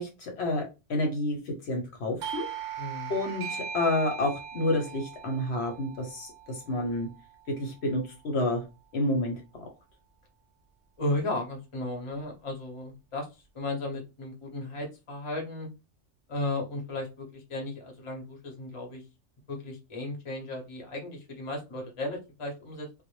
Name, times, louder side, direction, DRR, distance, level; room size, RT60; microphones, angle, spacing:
voice 1, 0.0-2.5 3.1-7.1 7.6-8.6 8.9-9.6, left 1 dB, 65° left, 1 dB, 0.9 m, -29 dB
Doorbell, 2.2-7.5, right 8 dB, 65° right, 0.8 m, -39 dB
voice 2, 2.8-3.1 11.0-13.3 13.5-15.7 16.3-19.0 19.5-23.0, left 2 dB, 30° left, 1 dB, 0.7 m, -35 dB
2.1 x 2.0 x 3.0 m, 0.27 s
omnidirectional pair, 1.3 m